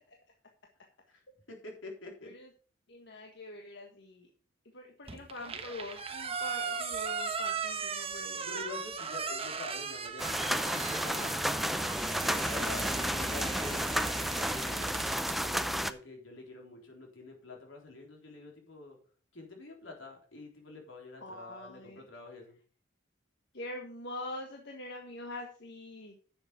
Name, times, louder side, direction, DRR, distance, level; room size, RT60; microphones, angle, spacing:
voice 1, 1.5-2.3 8.4-11.6 12.4-13.9 14.5-19.0 19.3-22.6, left 3 dB, 85° left, 1 dB, 3.7 m, -47 dB
voice 2, 2.9-4.3 4.7-8.4 12.9-13.1 21.2-22.0 23.5-26.1, left 2 dB, 65° left, 2 dB, 1.5 m, -44 dB
sound 1, 5.1-15.4, right 5 dB, 30° right, 1.1 m, -38 dB
sound 2, 10.2-15.9, equal, ahead, 0.5 m, -32 dB
10.5 x 7.1 x 4.9 m, 0.40 s
head